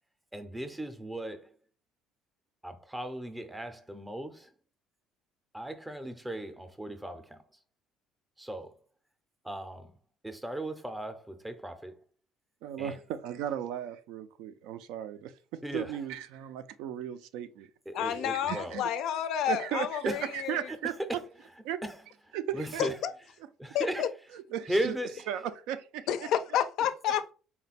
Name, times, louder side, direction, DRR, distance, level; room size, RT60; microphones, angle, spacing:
voice 1, 0.3-1.5 2.6-4.5 5.5-7.4 8.4-8.7 9.4-9.9 10.2-12.0 12.8-13.0 15.6-16.0 17.9-18.8 20.0-20.2 21.1-21.2 21.8-22.0 22.5-22.9 23.6-24.1 24.7-25.3, right 1 dB, 5° right, 0.5 m, -36 dB
voice 2, 12.6-17.7 18.5-18.9 19.5-20.9 21.6-21.8 22.3-22.9 24.3-25.0 25.3-26.1, right 10 dB, 80° right, 0.4 m, -36 dB
voice 3, 17.9-20.7 22.8-23.1 23.7-24.1 26.1-27.3, left 10 dB, 60° left, 0.4 m, -30 dB
4.1 x 2.2 x 4.0 m
cardioid pair, 155°, 0 cm